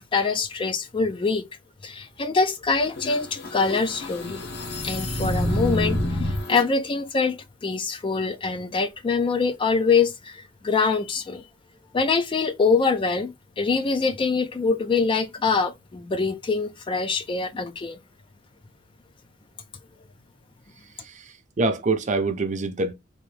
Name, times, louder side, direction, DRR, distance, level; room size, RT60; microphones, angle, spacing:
voice 1, 0.0-1.4 1.8-4.4 4.8-11.4 11.9-18.0, left 4 dB, 25° left, 0.3 m, -24 dB
sound 1, 2.9-6.7, left 1 dB, 50° left, 0.9 m, -28 dB
voice 2, 21.0-22.9, right 3 dB, 35° right, 0.6 m, -26 dB
3.8 x 2.6 x 3.2 m
head